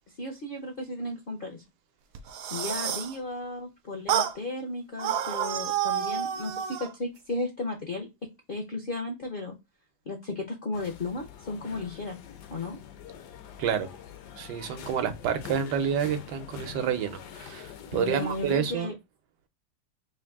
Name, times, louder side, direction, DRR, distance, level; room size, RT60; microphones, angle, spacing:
voice 1, 0.2-1.6 2.5-8.1 8.5-9.5 10.1-12.2 12.5-12.8 17.9-18.9, left 2 dB, 60° left, 0.5 m, -34 dB
sound 1, 2.2-3.2 4.1-4.4 5.0-6.9, right 9 dB, 70° right, 0.9 m, -29 dB
sound 2, 10.7-18.6, left 9 dB, 80° left, 1.2 m, -45 dB
voice 2, 14.4-18.9, right 7 dB, 85° right, 1.3 m, -29 dB
3.4 x 2.6 x 3.4 m
omnidirectional pair, 1.8 m